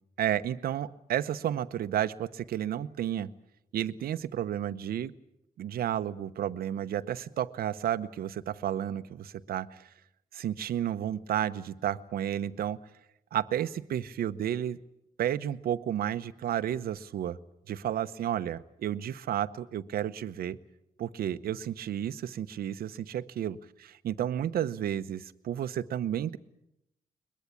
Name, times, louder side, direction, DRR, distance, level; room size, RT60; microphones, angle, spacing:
voice 1, 0.2-3.3 3.7-5.1 5.6-9.9 10.3-12.8 13.3-14.8 15.2-17.4 17.7-20.6 21.0-26.4, right 10 dB, 85° right, 13 dB, 0.9 m, -32 dB
22.0 x 21.5 x 8.6 m, 0.83 s
cardioid pair, 125°, 15 cm